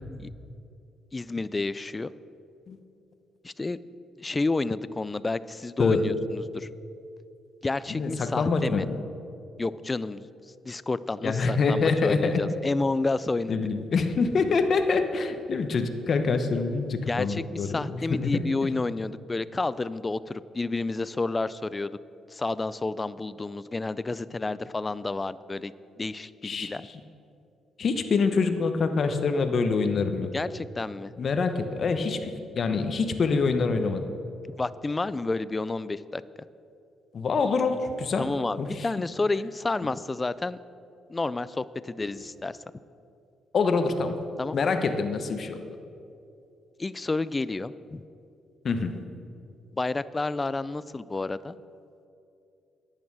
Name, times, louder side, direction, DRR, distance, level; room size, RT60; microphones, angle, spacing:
voice 1, 1.1-2.1 3.4-3.8 4.2-6.7 7.6-8.9 9.6-10.3 10.6-13.6 17.1-21.9 22.3-25.7 26.0-26.9 30.3-31.1 31.8-31.9 34.6-36.2 38.2-40.6 41.1-42.6 44.4-44.6 46.8-48.0 49.7-51.6, left 3 dB, 20° left, 17 dB, 0.4 m, -30 dB
voice 2, 7.9-8.9 11.2-12.4 13.5-18.5 26.4-26.7 27.8-30.3 31.2-34.0 37.1-38.2 38.6-38.9 43.5-44.2 44.5-45.6 48.6-48.9, left 4 dB, 50° left, 8 dB, 0.9 m, -25 dB
10.5 x 8.7 x 6.2 m, 2.6 s
cardioid pair, 90°, 0 cm